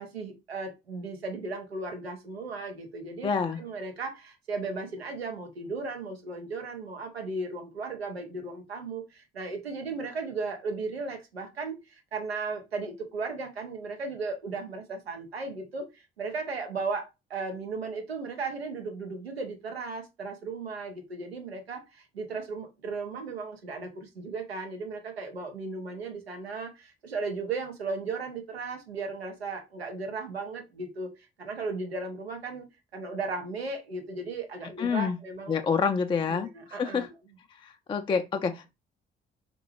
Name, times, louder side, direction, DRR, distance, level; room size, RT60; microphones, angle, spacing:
voice 1, 0.0-3.3 3.6-31.1 31.4-32.7 32.9-35.6 36.3-37.1, right 3 dB, 90° right, 0.6 m, -36 dB
voice 2, 3.2-3.6 34.8-35.2 35.5-37.1 37.6-38.7, left 5 dB, 15° left, 0.4 m, -28 dB
3.6 x 2.2 x 3.1 m
figure-of-eight pair, 45°, 30 cm